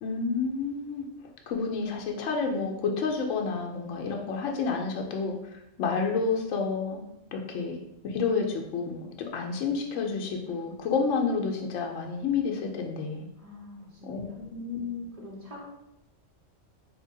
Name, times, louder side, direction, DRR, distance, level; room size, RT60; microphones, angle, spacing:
voice 1, 0.0-1.1 1.5-7.0 7.3-7.8 8.0-13.3 14.0-15.1, left 5 dB, 80° left, 1 dB, 0.9 m, -30 dB
voice 2, 13.4-14.4 15.1-15.7, left 1 dB, 35° right, -4 dB, 0.8 m, -46 dB
3.3 x 2.2 x 3.7 m, 0.85 s
omnidirectional pair, 1.3 m